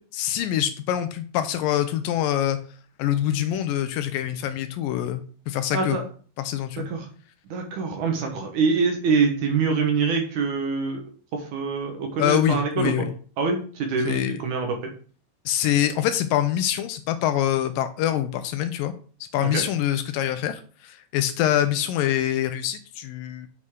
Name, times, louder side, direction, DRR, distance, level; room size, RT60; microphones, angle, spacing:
voice 1, 0.2-2.6 3.0-6.0 6.4-6.9 12.2-13.1 14.1-14.4 15.5-18.9 19.3-23.5, left 11 dB, 80° left, 10 dB, 2.2 m, -25 dB
voice 2, 5.7-6.0 6.8-7.1 7.5-11.0 11.3-13.1 13.4-14.8 19.4-19.6, right 4 dB, 65° right, 3 dB, 2.3 m, -25 dB
7.6 x 6.2 x 3.7 m, 0.41 s
omnidirectional pair, 4.2 m